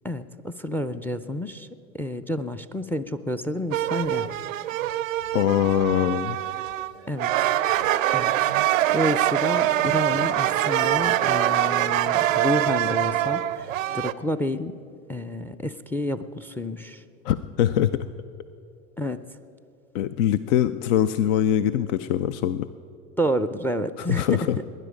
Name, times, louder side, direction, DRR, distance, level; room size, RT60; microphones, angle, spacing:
voice 1, 0.0-1.7 1.9-4.3 7.1-7.3 8.1-8.3 8.9-14.7 15.1-17.0 19.0-19.2 23.2-24.4, left 1 dB, 5° left, 13 dB, 0.4 m, -29 dB
sound 1, 3.7-6.9 7.2-14.1, right 13 dB, 90° right, 0.5 m, -24 dB
voice 2, 5.3-6.4 17.2-18.1 19.9-22.7 24.0-24.6, left 10 dB, 70° left, 14 dB, 0.6 m, -23 dB
19.5 x 10.5 x 5.1 m, 2.7 s
hypercardioid pair, 85°, 38 cm